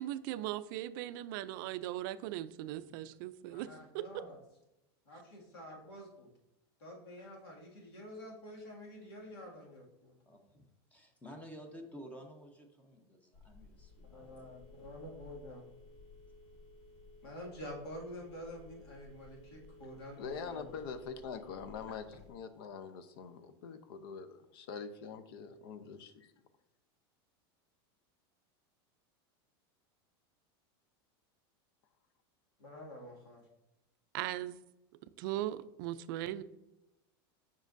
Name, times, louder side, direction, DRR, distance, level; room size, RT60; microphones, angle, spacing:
voice 1, 0.0-4.0 34.1-34.6 35.2-36.4, right 14 dB, 55° right, 13 dB, 0.4 m, -39 dB
voice 2, 3.5-4.4 5.1-6.3 6.8-10.1 14.1-15.7 17.2-20.7 32.6-33.4, left 1 dB, 90° left, -2 dB, 2.1 m, -48 dB
voice 3, 10.3-10.7 10.9-14.5, equal, 10° left, 5 dB, 0.7 m, -52 dB
Telephone, 13.3-22.3, left 2 dB, 50° left, 1.7 m, -56 dB
voice 4, 20.2-26.3, left 6 dB, 70° left, 11 dB, 0.7 m, -44 dB
7.3 x 5.2 x 2.6 m, 0.93 s
supercardioid pair, 150°, 13 cm